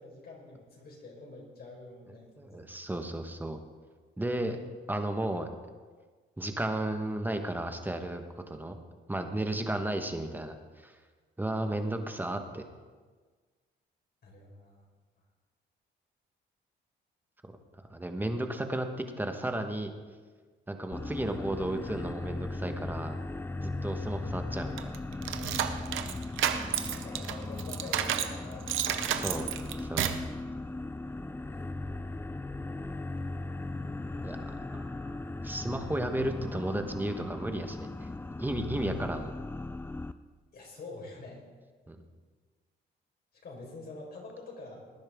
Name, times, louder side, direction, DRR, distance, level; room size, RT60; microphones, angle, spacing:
voice 1, 0.0-2.6 9.6-9.7 11.6-11.8 12.4-12.5 14.2-14.8 24.2-24.4 26.7-29.6 40.5-41.4 43.4-44.9, left 3 dB, 50° left, -1 dB, 4.6 m, -46 dB
voice 2, 2.4-3.6 4.2-4.6 4.9-5.5 6.4-8.8 9.1-11.0 11.4-12.6 17.4-17.5 17.9-19.9 20.7-23.2 23.6-25.1 29.1-29.5 29.8-30.2 34.2-35.2 35.4-38.1 38.4-39.3 41.9-42.0, right 1 dB, 10° right, 5 dB, 1.3 m, -34 dB
sound 1, 20.9-40.1, left 2 dB, 10° left, 0.5 m, -38 dB
sound 2, 24.8-28.4 28.7-30.3, right 10 dB, 85° right, 0.8 m, -31 dB
18.5 x 10.0 x 3.7 m, 1.4 s
cardioid pair, 90°, 20 cm